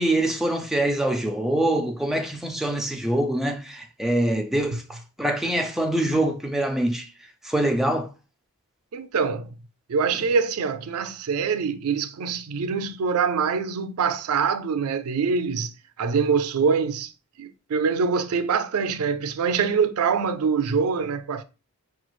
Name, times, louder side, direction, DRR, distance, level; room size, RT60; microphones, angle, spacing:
voice 1, 0.0-7.1 7.4-8.1, right 1 dB, ahead, 0.4 m, -24 dB
voice 2, 8.9-9.5 9.9-17.1 17.4-21.4, right 5 dB, 80° right, 0.4 m, -24 dB
5.0 x 2.3 x 3.0 m
head